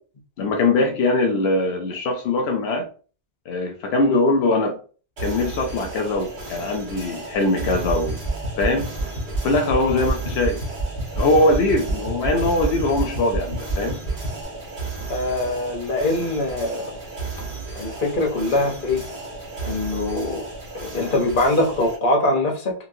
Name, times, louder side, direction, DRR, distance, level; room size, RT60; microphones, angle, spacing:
voice 1, 0.4-2.9 3.5-4.8 5.2-8.2 8.6-8.9 9.4-10.6 11.2-14.0, left 2 dB, 85° left, 0.8 m, -21 dB
sound 1, 5.2-22.0, right 3 dB, 55° right, 1.3 m, -35 dB
sound 2, 7.7-14.4, right 2 dB, 20° left, 1.4 m, -28 dB
voice 2, 15.1-16.9 17.8-19.0 19.6-20.4 20.7-22.7, left 2 dB, 55° left, 1.1 m, -23 dB
3.0 x 2.7 x 2.6 m
omnidirectional pair, 1.0 m